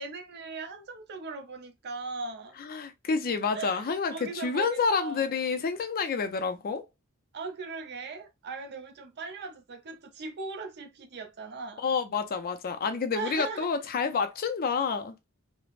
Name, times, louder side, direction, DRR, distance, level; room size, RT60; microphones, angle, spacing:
voice 1, 0.0-2.6 3.5-5.3 7.3-11.9 13.1-13.7, right 4 dB, 50° right, 0.5 m, -39 dB
voice 2, 2.6-6.8 11.8-15.1, left 5 dB, 40° left, 0.4 m, -29 dB
3.2 x 2.0 x 2.4 m
head